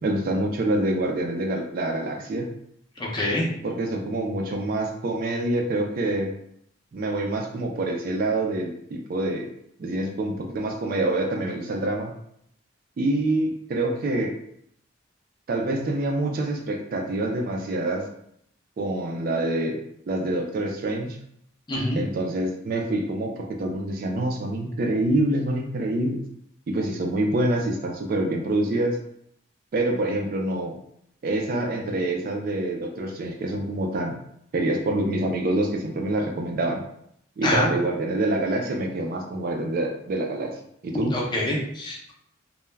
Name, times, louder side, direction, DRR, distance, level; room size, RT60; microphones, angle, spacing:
voice 1, 0.0-2.5 3.6-6.3 6.9-9.5 9.8-12.1 13.0-14.4 15.5-18.1 18.8-19.8 20.1-21.2 21.9-26.2 26.7-29.0 29.7-30.8 31.2-34.2 34.5-36.8 37.4-40.6 40.8-41.2, right 1 dB, 45° right, 2 dB, 0.3 m, -26 dB
voice 2, 3.0-3.5 21.7-22.0 37.4-37.7 41.1-42.1, left 1 dB, 20° left, -3 dB, 0.5 m, -25 dB
2.2 x 2.1 x 3.2 m, 0.72 s
head